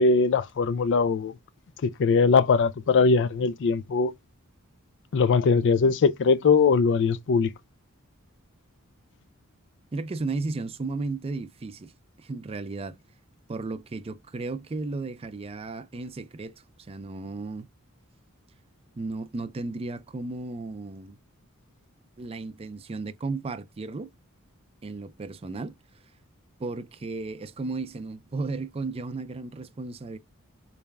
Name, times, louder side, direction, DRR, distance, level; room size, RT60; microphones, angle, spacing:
voice 1, 0.0-1.3 1.8-4.1 5.1-7.5, left 4 dB, 55° left, 0.4 m, -21 dB
voice 2, 9.9-11.9 12.2-13.0 13.5-17.7 19.0-21.2 22.2-24.1 24.8-25.7 26.6-30.2, right 3 dB, 25° right, 0.4 m, -34 dB
4.0 x 3.4 x 2.2 m
head